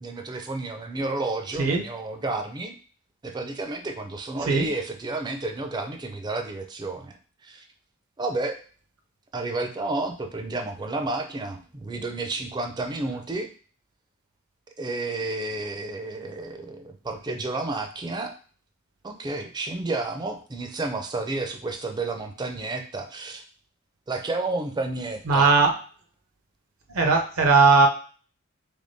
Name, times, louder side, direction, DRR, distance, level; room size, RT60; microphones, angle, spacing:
voice 1, 0.0-2.8 3.2-7.2 7.4-7.6 8.2-8.6 9.3-13.5 14.8-18.3 19.0-23.4 24.1-25.5, right 2 dB, 20° right, 5 dB, 0.4 m, -31 dB
voice 2, 25.3-25.7 26.9-27.9, right 4 dB, 75° right, 3 dB, 0.6 m, -18 dB
3.5 x 3.3 x 2.6 m, 0.41 s
head